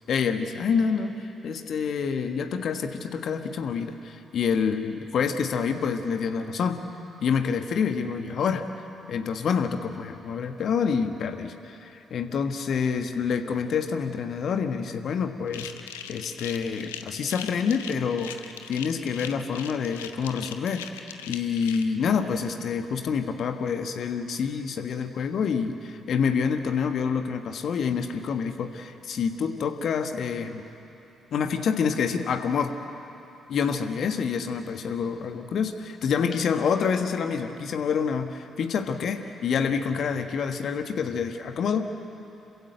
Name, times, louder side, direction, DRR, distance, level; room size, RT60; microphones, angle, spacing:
voice 1, 0.1-6.8 7.2-8.7 9.1-30.6 31.3-32.7 33.5-41.9, left 6 dB, 60° left, 7 dB, 1.4 m, -27 dB
sound 1, 15.5-21.8, left 9 dB, 85° left, 0.8 m, -40 dB
27.0 x 15.5 x 8.0 m, 3.0 s
figure-of-eight pair, 40°, 0 cm